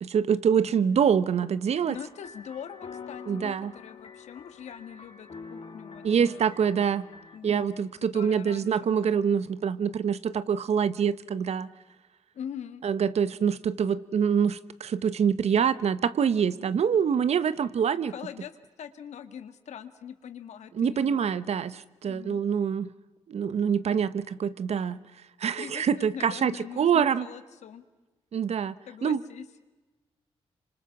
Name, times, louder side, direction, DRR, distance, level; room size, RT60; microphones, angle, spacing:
voice 1, 0.0-1.9 3.3-3.7 6.0-7.0 7.4-11.7 12.8-18.1 20.8-21.7 22.0-22.9 23.3-25.0 25.4-27.3 28.3-28.7 29.0-29.2, right 7 dB, 70° right, 16 dB, 1.1 m, -25 dB
sound 1, 1.7-7.4, left 5 dB, 55° left, 3.5 m, -46 dB
voice 2, 1.9-6.4 7.3-9.3 12.3-12.8 18.1-18.5 18.8-21.4 22.0-22.4 25.6-27.8 28.9-29.5, left 8 dB, 85° left, 11 dB, 1.8 m, -43 dB
27.0 x 25.5 x 7.3 m, 1.2 s
cardioid pair, 75°, 11 cm